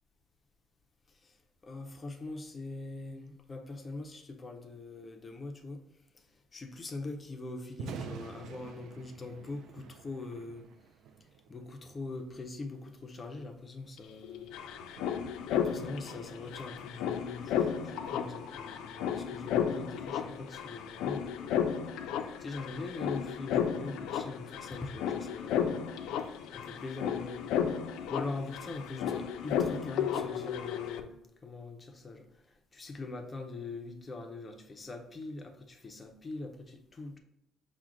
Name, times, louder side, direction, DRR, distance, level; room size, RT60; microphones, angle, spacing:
voice 1, 1.6-5.8 6.1-10.7 11.2-14.5 15.5-21.6 22.4-25.8 26.5-37.2, left 3 dB, 20° left, 4 dB, 0.5 m, -42 dB
Thunder, 7.6-21.8, right 7 dB, 60° right, 0.3 m, -51 dB
sound 1, 14.0-14.1 14.2-31.0, left 8 dB, 80° left, 0.4 m, -34 dB
5.9 x 2.1 x 3.7 m, 0.83 s
cardioid pair, 165°, 0 cm